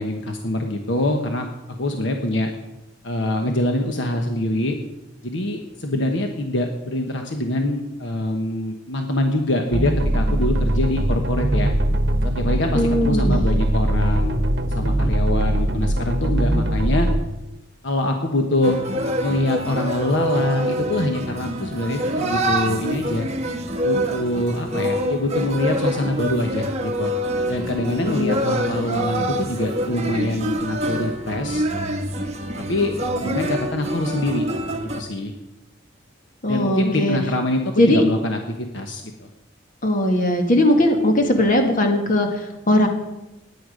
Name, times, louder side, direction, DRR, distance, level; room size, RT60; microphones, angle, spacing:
voice 1, 0.0-2.5 3.0-4.8 5.2-11.7 12.2-14.4 14.7-17.1 17.8-18.8 19.2-23.3 23.8-27.1 27.5-31.6 32.6-32.9 33.2-34.4 35.0-35.3 36.5-39.3, left 1 dB, 65° left, 4 dB, 1.2 m, -24 dB
sound 1, 9.7-17.2, right 1 dB, 60° right, 1.2 m, -21 dB
voice 2, 12.7-13.4 28.0-28.4 36.4-37.2 37.8-38.0 39.8-42.9, left 1 dB, 45° left, 3 dB, 2.0 m, -19 dB
sound 2, 18.6-35.0, equal, 35° right, 1.3 m, -26 dB
16.0 x 10.0 x 5.1 m, 0.98 s
head